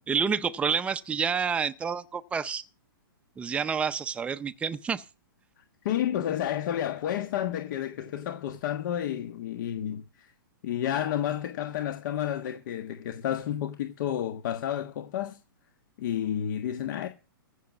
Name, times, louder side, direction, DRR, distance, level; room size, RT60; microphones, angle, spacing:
voice 1, 0.1-2.6 3.4-5.0, right 6 dB, 10° right, 0.6 m, -28 dB
voice 2, 5.8-10.3 10.6-15.4 16.0-17.1, left 10 dB, 55° left, 1.4 m, -31 dB
15.0 x 6.7 x 7.2 m
hypercardioid pair, 135°, 12 cm